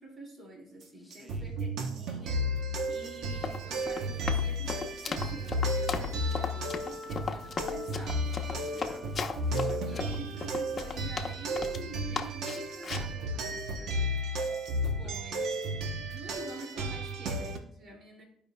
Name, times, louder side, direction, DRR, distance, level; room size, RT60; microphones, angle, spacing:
voice 1, 0.0-8.4 9.8-13.7 14.8-15.6 15.9-18.3, right 2 dB, 55° right, 0 dB, 2.8 m, -47 dB
voice 2, 0.9-1.5 8.5-10.2 13.8-14.2 14.6-14.8 15.0-15.1, left 2 dB, 15° left, 3 dB, 1.1 m, -50 dB
sound 1, 1.1-17.6, equal, 80° right, 1.0 m, -33 dB
Run, 3.3-11.8 12.2-13.1, left 5 dB, 45° left, 0.9 m, -36 dB
14.5 x 5.0 x 2.3 m, 0.69 s
cardioid pair, 75°, 0 cm